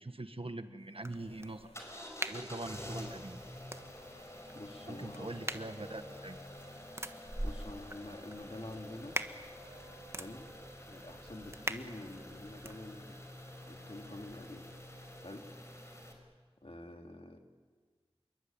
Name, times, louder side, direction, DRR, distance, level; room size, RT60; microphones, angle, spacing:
voice 1, 0.0-1.7 2.3-3.4 4.9-6.4, right 2 dB, 65° right, 9 dB, 1.6 m, -43 dB
sound 1, 0.8-10.0, left 2 dB, 85° left, 3.1 m, -59 dB
sound 2, 1.0-12.8, right 1 dB, 25° right, 1.4 m, -45 dB
sound 3, 1.7-16.1, left 1 dB, 25° left, 5.3 m, -49 dB
voice 2, 4.5-5.4 7.4-9.2 10.2-10.5 10.9-13.2 13.7-14.7 15.2-15.4 16.6-17.4, left 1 dB, 65° left, 4 dB, 2.7 m, -47 dB
28.0 x 23.0 x 9.0 m, 1.5 s
wide cardioid pair, 40°, 10 cm